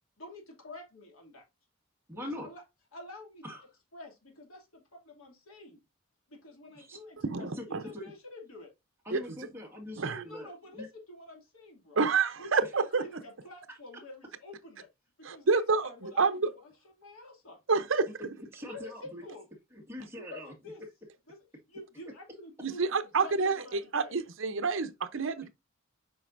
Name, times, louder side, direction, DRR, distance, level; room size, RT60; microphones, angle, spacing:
voice 1, 0.2-1.4 2.2-2.6 2.9-3.4 3.9-5.8 6.3-7.5 7.8-8.7 10.2-12.0 12.4-14.9 15.2-16.7 17.0-17.6 18.6-19.4 20.2-20.8 21.3-21.4 21.7-24.2, left 2 dB, 85° left, 2.5 m, -48 dB
voice 2, 2.1-2.5 3.4-3.6 6.7-7.0 7.4-8.1 9.0-10.9 18.5-19.2 19.7-20.5, left 1 dB, 10° right, 1.8 m, -43 dB
voice 3, 7.2-7.8 9.1-9.2 10.0-10.2 12.0-13.0 15.2-16.5 17.7-18.0 22.6-25.5, right 4 dB, 65° right, 0.7 m, -28 dB
7.8 x 5.1 x 2.6 m
head